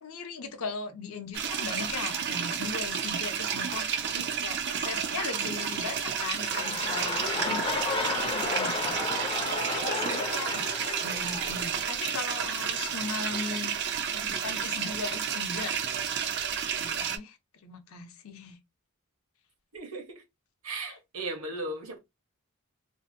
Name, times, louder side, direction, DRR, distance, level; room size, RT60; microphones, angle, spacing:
voice 1, 0.0-3.9 4.4-9.0 9.5-13.7 14.1-15.7 16.5-17.4 17.6-18.6 20.9-21.0, left 4 dB, 70° left, 0.6 m, -38 dB
sound 1, 1.3-17.2, right 7 dB, 50° right, 0.4 m, -31 dB
sound 2, 6.1-12.4 13.1-13.2, left 3 dB, 25° left, 0.4 m, -33 dB
voice 2, 19.7-20.2 20.6-22.0, right 2 dB, 70° right, 1.0 m, -37 dB
2.7 x 2.4 x 2.6 m
head